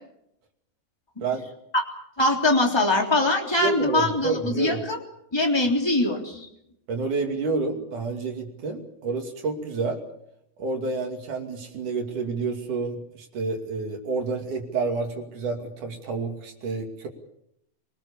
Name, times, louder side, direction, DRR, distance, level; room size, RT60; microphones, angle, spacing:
voice 1, 2.2-5.0 5.3-6.5, left 2 dB, 10° left, 2 dB, 2.0 m, -22 dB
voice 2, 3.6-4.8 6.9-10.0 10.6-17.1, right 4 dB, 45° right, 3 dB, 3.2 m, -29 dB
26.5 x 19.5 x 7.0 m, 0.76 s
omnidirectional pair, 6.0 m